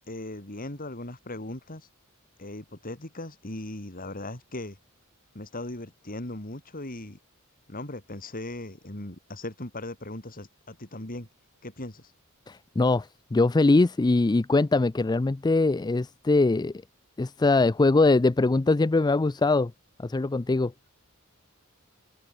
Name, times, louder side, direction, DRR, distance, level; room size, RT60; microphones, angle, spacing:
voice 1, 0.1-1.9 2.4-4.8 5.3-7.2 7.7-11.3 11.6-12.1, left 1 dB, 40° left, 3.6 m, -38 dB
voice 2, 12.5-16.7 17.2-19.7 20.0-20.7, left 3 dB, 20° left, 0.4 m, -22 dB
open air
head